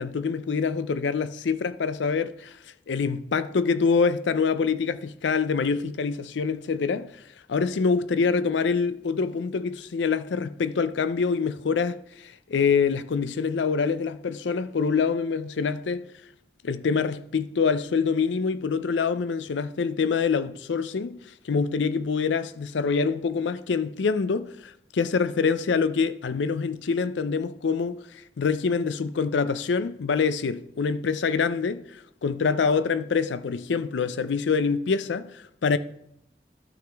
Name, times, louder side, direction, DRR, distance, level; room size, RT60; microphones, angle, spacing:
voice 1, 0.0-2.6 2.9-7.1 7.5-16.0 16.6-21.2 21.4-35.8, left 5 dB, 80° left, 0.5 m, -25 dB
13.0 x 6.2 x 3.4 m
head